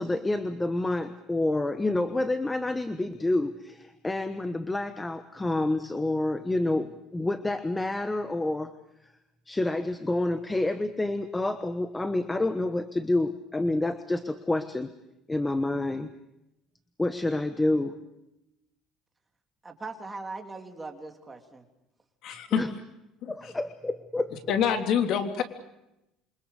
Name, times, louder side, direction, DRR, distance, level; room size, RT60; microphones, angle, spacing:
voice 1, 0.0-8.7 9.5-14.9 15.3-16.1 17.0-18.0 22.5-22.7 23.3-24.4, left 2 dB, 10° left, 10 dB, 1.2 m, -28 dB
voice 2, 19.6-21.6, right 3 dB, 15° right, 4 dB, 3.1 m, -40 dB
voice 3, 22.2-22.6 23.2-23.5 24.5-25.4, left 8 dB, 60° left, 7 dB, 3.5 m, -26 dB
28.0 x 24.5 x 6.7 m, 0.89 s
cardioid pair, 145°, 0 cm